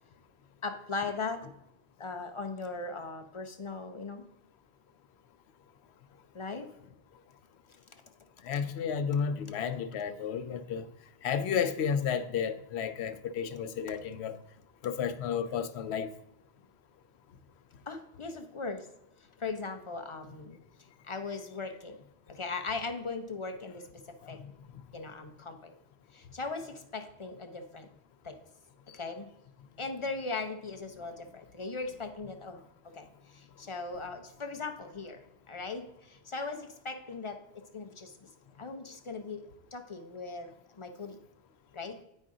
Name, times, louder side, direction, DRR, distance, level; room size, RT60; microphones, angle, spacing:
voice 1, 0.6-1.4 2.0-4.2 6.3-6.7 17.9-18.9 19.4-20.6 21.0-22.0 22.3-24.4 24.9-25.7 26.1-27.9 28.2-28.4 28.9-29.3 29.8-32.6 32.9-38.3 38.6-39.4 39.7-41.2 41.7-42.0, left 4 dB, 35° left, 0.6 m, -39 dB
voice 2, 8.4-10.9 11.2-14.4 14.8-16.1 24.2-24.4 24.7-24.8, left 7 dB, 80° left, 0.8 m, -32 dB
8.7 x 5.3 x 3.7 m
omnidirectional pair, 1.1 m